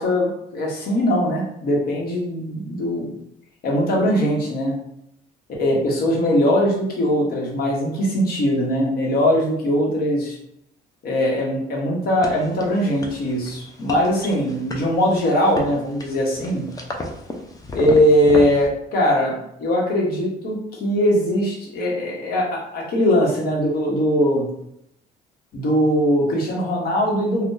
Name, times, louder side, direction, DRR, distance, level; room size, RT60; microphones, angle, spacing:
voice 1, 0.0-3.1 3.6-4.8 5.6-10.4 11.0-16.7 17.7-24.5 25.5-27.4, equal, 60° left, -1 dB, 1.0 m, -20 dB
sound 1, 12.2-18.7, left 1 dB, 20° left, 0.5 m, -34 dB
2.6 x 2.2 x 3.7 m, 0.76 s
cardioid pair, 110°, 17 cm